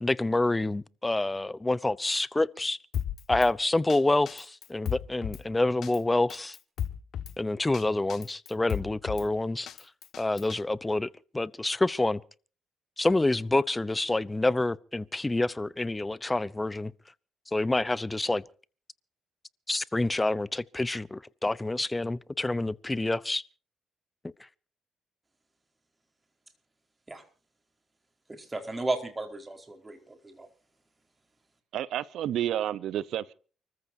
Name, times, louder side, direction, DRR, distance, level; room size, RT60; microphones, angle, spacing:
voice 1, 0.0-2.8 3.3-6.6 7.4-9.7 10.2-11.1 11.3-12.2 13.0-16.9 17.5-18.4 19.7-23.4, left 2 dB, 15° left, 0.7 m, -27 dB
Drum kit, 2.9-3.5 3.9-4.0 4.3-5.4 5.8-6.0 6.3-7.3 7.7-7.8 8.1-9.3 9.7-10.6, left 9 dB, 65° left, 1.7 m, -34 dB
voice 2, 28.3-30.5, right 2 dB, 20° right, 4.7 m, -34 dB
voice 3, 31.7-33.3, right 11 dB, 80° right, 0.8 m, -30 dB
29.5 x 14.5 x 2.8 m
cardioid pair, 90°, 0 cm